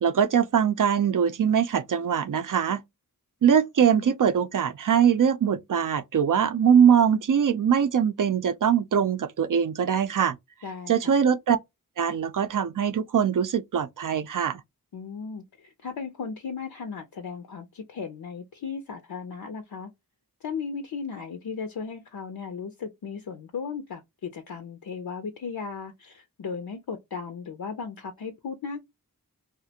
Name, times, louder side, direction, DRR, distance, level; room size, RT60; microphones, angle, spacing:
voice 1, 0.0-2.8 3.4-10.4 10.9-11.6 12.0-14.6, right 8 dB, 60° right, 0.5 m, -22 dB
voice 2, 10.6-11.1 14.9-19.9 20.4-28.8, left 5 dB, 75° left, 0.5 m, -36 dB
2.4 x 2.1 x 2.7 m
wide cardioid pair, 50°, 36 cm